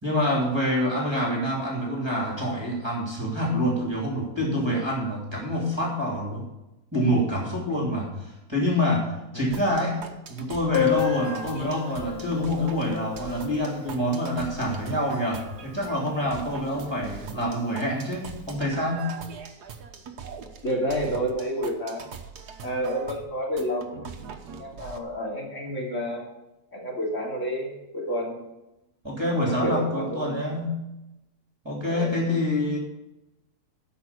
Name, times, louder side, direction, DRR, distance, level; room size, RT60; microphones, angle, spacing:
voice 1, 0.0-6.5 6.9-10.0 10.3-19.1 29.0-30.8 31.6-32.8, left 1 dB, 15° right, -3 dB, 2.9 m, -26 dB
sound 1, 9.5-25.0, right 6 dB, 80° right, 1.7 m, -41 dB
Piano, 10.7-16.1 16.4-16.5 16.7-16.8 17.2-17.3 18.0-18.2, left 12 dB, 85° left, 0.5 m, -32 dB
voice 2, 20.6-22.1 22.6-24.0 24.6-26.3 26.7-28.4 29.3-30.5 31.8-32.1, equal, 45° left, -3 dB, 3.2 m, -30 dB
13.0 x 5.6 x 8.2 m, 0.94 s
omnidirectional pair, 1.7 m